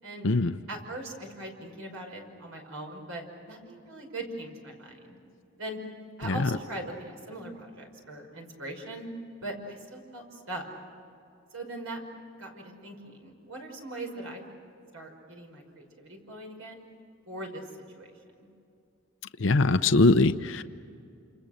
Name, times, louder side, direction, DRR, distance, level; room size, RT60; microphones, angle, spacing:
voice 1, 0.7-5.2 5.6-5.8 6.2-9.1 9.4-10.6 11.5-12.0 12.4-14.4 14.9-16.9 17.3-17.6 17.9-18.1 18.4-18.5, right 1 dB, 85° right, 2 dB, 5.5 m, -40 dB
voice 2, 19.4-20.6, left 3 dB, 65° left, 10 dB, 0.7 m, -21 dB
29.0 x 28.0 x 6.6 m, 2.6 s
head